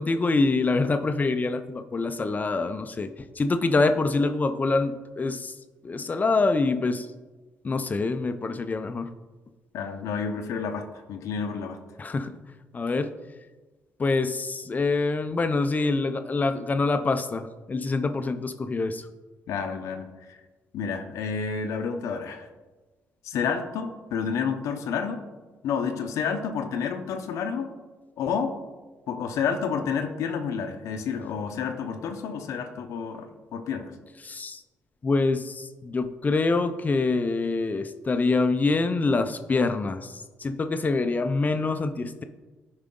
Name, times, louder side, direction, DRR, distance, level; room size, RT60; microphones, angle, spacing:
voice 1, 0.0-3.1 3.4-5.5 5.8-7.1 7.6-9.1 12.0-12.4 12.7-13.1 14.0-19.0 34.2-34.6 35.0-40.1 40.4-42.2, left 3 dB, 30° left, 9 dB, 0.5 m, -25 dB
voice 2, 9.7-11.8 19.5-20.4 20.7-22.5 23.2-25.2 25.6-27.7 28.2-28.5 29.1-33.3 33.5-33.9, left 6 dB, 80° left, 5 dB, 0.7 m, -30 dB
10.5 x 4.8 x 3.7 m, 1.2 s
cardioid pair, 80°, 5 cm